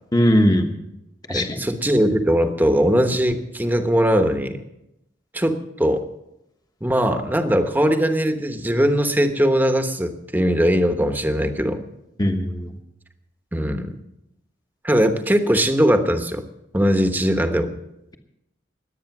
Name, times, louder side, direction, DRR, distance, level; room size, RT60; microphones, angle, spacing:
voice 1, 0.1-0.7 1.3-1.6 12.2-12.7, equal, 20° left, 5 dB, 1.1 m, -19 dB
voice 2, 1.3-4.6 5.3-6.0 6.8-11.8 13.5-13.9 14.8-16.4 16.7-17.7, equal, 10° right, 7 dB, 1.1 m, -20 dB
21.5 x 8.8 x 6.0 m, 0.88 s
head